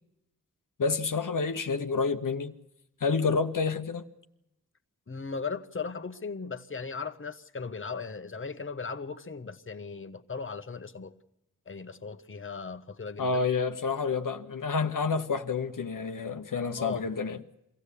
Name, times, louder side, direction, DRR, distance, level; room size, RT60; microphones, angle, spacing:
voice 1, 0.8-2.5 3.0-4.0 13.2-17.4, left 4 dB, 80° left, 1.0 m, -29 dB
voice 2, 5.1-11.1 11.7-13.4 16.8-17.1, left 5 dB, 40° left, 1.0 m, -37 dB
23.5 x 15.5 x 8.3 m
wide cardioid pair, 55°, 32 cm